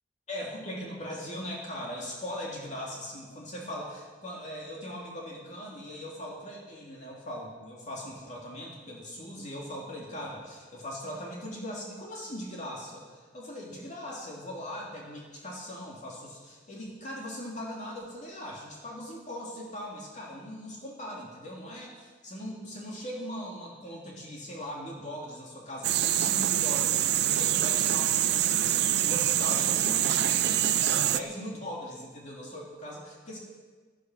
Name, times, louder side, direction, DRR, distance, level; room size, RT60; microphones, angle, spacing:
voice 1, 0.3-33.4, equal, 40° left, -3 dB, 2.7 m, -40 dB
sound 1, 25.8-31.2, right 12 dB, 60° right, 0.6 m, -25 dB
16.5 x 10.5 x 6.2 m, 1.4 s
head